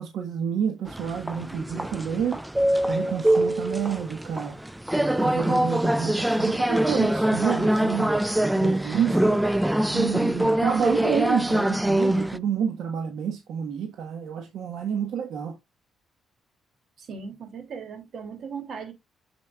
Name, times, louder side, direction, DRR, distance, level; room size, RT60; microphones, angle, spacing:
voice 1, 0.0-2.4 2.9-4.5 5.0-9.1 9.9-15.6, right 7 dB, 80° right, 1.4 m, -29 dB
sound 1, 0.9-12.4, right 1 dB, 5° right, 0.4 m, -24 dB
voice 2, 8.9-9.4 17.0-18.9, right 7 dB, 60° right, 2.8 m, -36 dB
8.4 x 7.4 x 2.4 m
cardioid pair, 90°, 0 cm